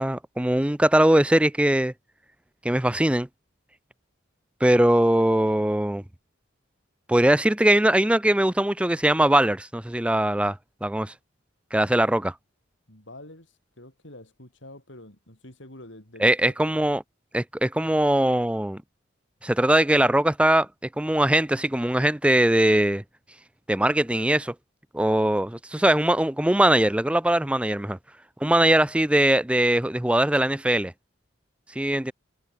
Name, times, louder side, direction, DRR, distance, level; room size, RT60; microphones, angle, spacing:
voice 1, 0.0-1.9 2.6-3.3 4.6-6.0 7.1-10.6 10.8-11.1 11.7-12.3 16.2-17.0 17.3-18.8 19.4-20.7 21.0-23.0 23.7-24.5 24.9-28.0 28.4-30.9 31.8-32.1, right 1 dB, 5° right, 0.5 m, -21 dB
voice 2, 12.9-16.7, left 1 dB, 65° left, 6.2 m, -46 dB
head